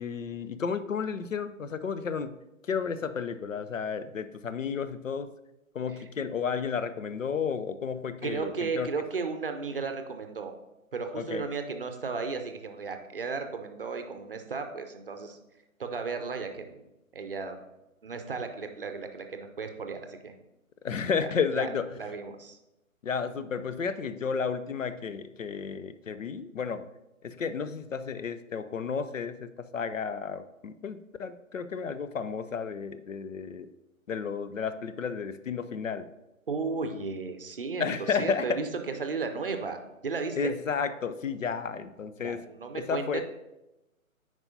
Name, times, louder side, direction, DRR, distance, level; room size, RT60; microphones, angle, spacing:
voice 1, 0.0-2.4 2.6-5.3 5.7-8.9 11.2-11.5 20.8-22.0 23.0-26.9 27.2-33.7 34.1-36.1 37.8-38.6 40.4-42.4 42.7-43.2, left 6 dB, 65° left, 12 dB, 0.6 m, -32 dB
voice 2, 8.2-10.5 10.9-15.4 15.8-16.8 17.1-17.6 18.0-20.3 21.2-21.7 21.9-22.6 36.5-40.5 42.2-43.2, right 4 dB, 40° right, 6 dB, 0.6 m, -34 dB
9.5 x 4.7 x 2.7 m, 0.95 s
figure-of-eight pair, 140°, 42 cm